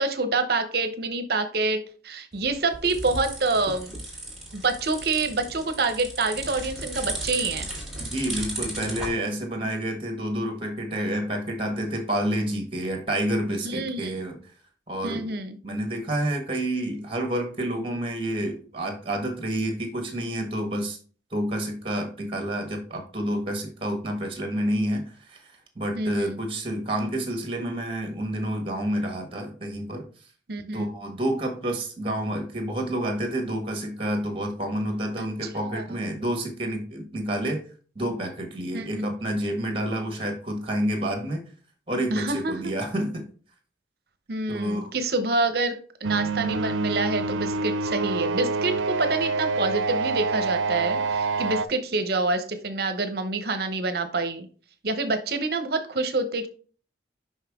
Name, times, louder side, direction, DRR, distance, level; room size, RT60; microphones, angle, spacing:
voice 1, 0.0-3.9 4.5-7.7 13.6-14.1 15.0-15.6 26.0-26.4 30.5-30.9 35.2-35.3 35.7-35.8 38.7-39.1 42.1-42.6 44.3-54.5 54.8-56.5, right 3 dB, 55° right, 9 dB, 0.8 m, -27 dB
sound 1, 2.3-9.1, right 1 dB, ahead, 2.0 m, -35 dB
voice 2, 8.0-14.4 14.9-21.0 21.3-30.1 30.7-37.6 37.9-41.4 41.9-43.2 44.5-44.9, right 1 dB, 30° right, 4 dB, 1.5 m, -29 dB
sound 2, 46.0-51.7, right 3 dB, 90° right, 0.4 m, -27 dB
5.6 x 5.3 x 3.5 m, 0.41 s
head